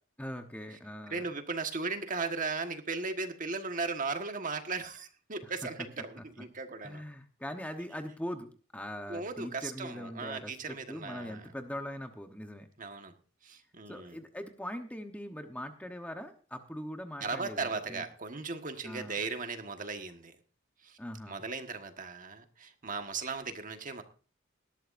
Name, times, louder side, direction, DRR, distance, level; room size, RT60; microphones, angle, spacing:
voice 1, 0.2-1.4 5.4-5.9 6.2-6.4 6.8-12.7 13.9-18.0 18.8-19.2 21.0-21.4, equal, 5° left, 6 dB, 1.0 m, -42 dB
voice 2, 1.1-7.0 9.1-11.5 12.8-13.1 13.4-14.2 17.2-20.4 20.8-21.0 21.3-24.0, right 4 dB, 40° right, 6 dB, 1.5 m, -37 dB
18.5 x 12.5 x 2.6 m, 0.39 s
head